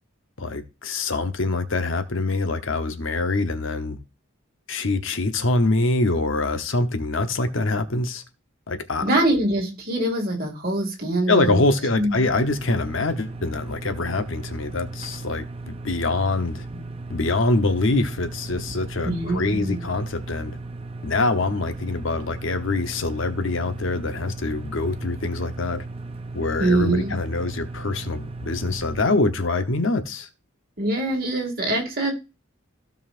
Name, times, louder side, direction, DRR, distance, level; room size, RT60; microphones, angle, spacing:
voice 1, 0.4-4.0 4.7-8.2 8.7-9.0 11.3-16.7 17.1-20.6 21.0-25.9 26.3-30.3, left 2 dB, 65° left, 0.9 m, -24 dB
voice 2, 9.0-11.6 11.9-12.3 16.7-16.9 19.0-19.8 26.6-27.1 30.8-32.1, right 1 dB, 45° right, 2.3 m, -24 dB
sound 1, 12.2-29.0, right 2 dB, 25° right, 0.5 m, -36 dB
15.5 x 5.4 x 2.5 m
head